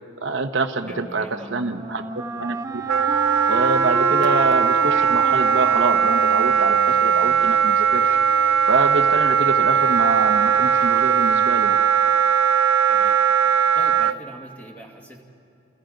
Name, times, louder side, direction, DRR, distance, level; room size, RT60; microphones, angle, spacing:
voice 1, 0.2-1.3 1.5-2.8 3.5-8.2 8.7-11.8, right 3 dB, 60° right, 6 dB, 1.0 m, -25 dB
Wind instrument woodwind instrument, 0.8-7.7, right 2 dB, 15° right, 0.6 m, -32 dB
voice 2, 0.9-1.5 1.9-2.1 12.9-13.2 13.7-15.2, right 1 dB, 10° left, 0 dB, 2.3 m, -41 dB
sound 1, 2.7-10.8, left 1 dB, 50° left, 3.3 m, -44 dB
Wind instrument woodwind instrument 2, 2.9-14.2, right 7 dB, 80° right, 0.6 m, -19 dB
30.0 x 29.0 x 5.2 m, 2.7 s
head